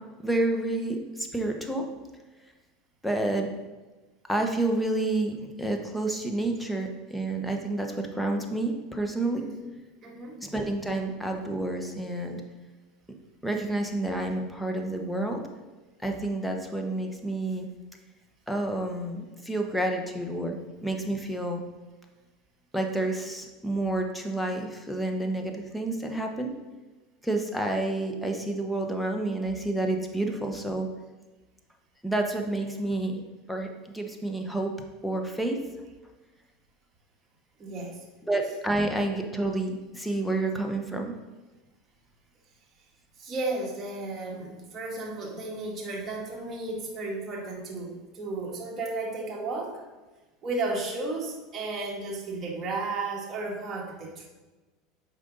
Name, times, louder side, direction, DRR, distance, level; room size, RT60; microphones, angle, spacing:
voice 1, 0.2-1.8 3.0-3.5 4.3-9.4 10.4-12.4 13.4-15.4 16.0-17.7 18.5-20.6 20.8-21.6 22.7-26.5 27.2-30.9 32.0-33.2 33.5-33.7 33.9-34.7 35.0-35.6 38.3-41.1, right 2 dB, 5° left, 3 dB, 1.0 m, -29 dB
voice 2, 9.4-10.4 37.6-38.0 38.4-38.6 43.2-49.8 50.4-54.3, right 3 dB, 30° right, -2 dB, 1.9 m, -34 dB
7.5 x 5.2 x 3.9 m, 1.2 s
hypercardioid pair, 100°, 0 cm